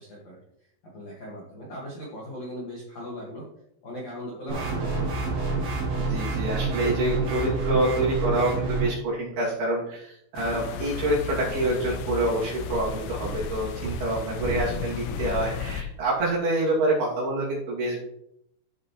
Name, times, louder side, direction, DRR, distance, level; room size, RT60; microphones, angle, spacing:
voice 1, 0.0-3.5 3.8-5.8, equal, 55° left, -5 dB, 1.9 m, -39 dB
sound 1, 4.5-8.9, right 3 dB, 40° right, 3.1 m, -28 dB
voice 2, 6.0-18.0, right 1 dB, 55° right, -5 dB, 4.1 m, -27 dB
sound 2, 10.4-15.8, left 8 dB, 80° left, 2.5 m, -34 dB
sound 3, 11.4-16.4, right 5 dB, 90° right, 3.5 m, -40 dB
13.5 x 6.1 x 3.1 m, 0.76 s
omnidirectional pair, 5.7 m